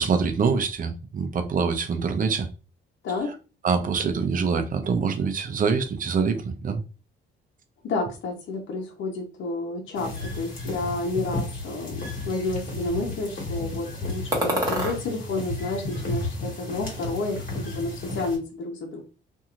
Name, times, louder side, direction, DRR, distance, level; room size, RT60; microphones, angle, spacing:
voice 1, 0.0-2.5 3.6-6.8, right 5 dB, 45° right, 0.6 m, -25 dB
voice 2, 7.8-19.0, left 2 dB, 75° left, 0.9 m, -30 dB
sound 1, 10.0-18.4, left 2 dB, 45° left, 1.6 m, -33 dB
sound 2, 14.3-15.0 15.6-16.5 16.8-17.6, equal, 20° right, 1.2 m, -30 dB
2.8 x 2.6 x 2.5 m
cardioid pair, 90°, 20 cm